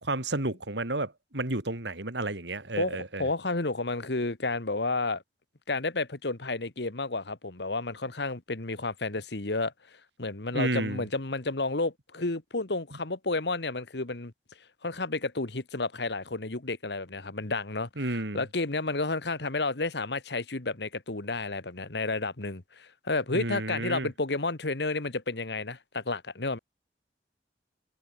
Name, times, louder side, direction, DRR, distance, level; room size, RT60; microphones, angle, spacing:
voice 1, 0.0-3.3 10.5-11.1 18.0-18.4 23.3-24.1, right 2 dB, 75° right, 3.3 m, -31 dB
voice 2, 2.8-5.2 5.7-9.7 10.2-14.3 14.8-17.9 18.3-26.6, left 3 dB, 70° left, 1.6 m, -31 dB
head